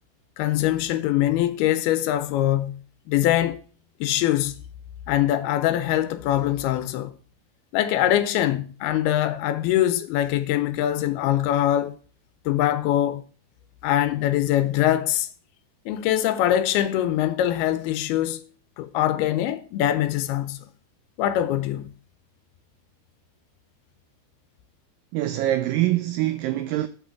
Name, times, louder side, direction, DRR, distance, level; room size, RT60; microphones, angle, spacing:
voice 1, 0.4-2.8 3.1-3.6 4.0-4.5 5.1-7.1 7.7-12.0 12.5-13.2 13.8-15.3 15.9-18.5 18.8-20.6 21.2-21.9, left 12 dB, 80° left, 2.6 m, -23 dB
voice 2, 25.1-26.9, right 14 dB, 90° right, 2.0 m, -24 dB
6.3 x 6.0 x 7.0 m
omnidirectional pair, 4.6 m